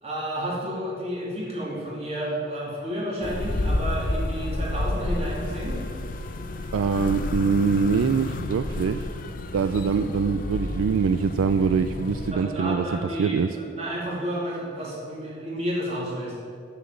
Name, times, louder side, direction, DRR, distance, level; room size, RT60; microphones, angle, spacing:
voice 1, 0.0-5.8 12.3-16.4, equal, 30° right, -5 dB, 2.3 m, -31 dB
sound 1, 3.2-12.3, left 2 dB, 45° left, 0.5 m, -30 dB
voice 2, 6.7-9.1 9.5-13.5, right 5 dB, 90° right, 9 dB, 0.3 m, -24 dB
6.9 x 6.9 x 7.4 m, 2.3 s
head